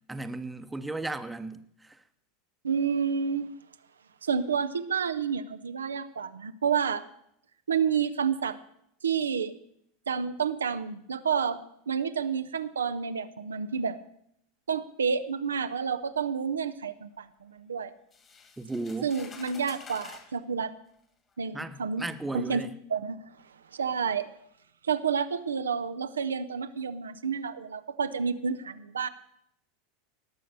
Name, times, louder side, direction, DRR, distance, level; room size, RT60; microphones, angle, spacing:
voice 1, 0.1-2.0 18.6-19.1 21.5-22.7, right 2 dB, 10° right, 0.9 m, -35 dB
voice 2, 2.6-3.5 4.2-7.0 7.7-8.6 9.0-9.5 10.1-11.6 11.9-14.0 14.7-17.9 19.0-20.7 21.4-22.0 22.3-22.6 22.9-23.3 23.7-24.3 24.8-29.1, right 6 dB, 85° right, 0.6 m, -29 dB
sound 1, 18.1-20.3 21.3-21.4 22.0-22.2, left 5 dB, 30° left, 2.3 m, -49 dB
18.5 x 6.6 x 6.6 m
hypercardioid pair, 90°, 0 cm